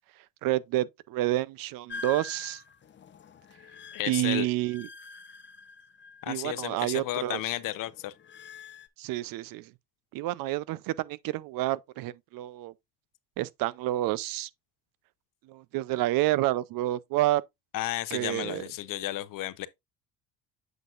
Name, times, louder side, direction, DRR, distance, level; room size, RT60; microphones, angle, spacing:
voice 1, 0.4-2.6 4.1-4.9 6.3-7.4 9.0-9.7 10.1-12.7 13.4-14.5 15.5-17.4 18.1-18.6, right 15 dB, 70° right, 0.6 m, -29 dB
sound 1, 1.9-6.6 6.9-8.9, left 4 dB, 30° left, 0.7 m, -46 dB
voice 2, 3.9-4.5 6.2-8.1 17.7-19.7, left 15 dB, 65° left, 0.7 m, -33 dB
8.0 x 5.9 x 2.4 m
cardioid pair, 110°, 35 cm